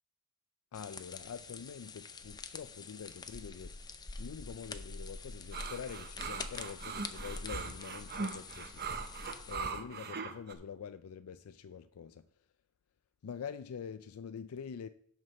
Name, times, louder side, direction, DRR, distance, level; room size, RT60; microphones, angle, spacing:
voice 1, 0.7-3.8 4.2-8.9 9.5-12.3 13.2-14.9, left 7 dB, 90° left, 0.4 m, -45 dB
sound 1, 0.7-9.6, left 3 dB, 20° left, 0.5 m, -46 dB
sound 2, 5.5-10.5, right 4 dB, 50° right, 0.8 m, -40 dB
7.9 x 5.8 x 5.7 m
head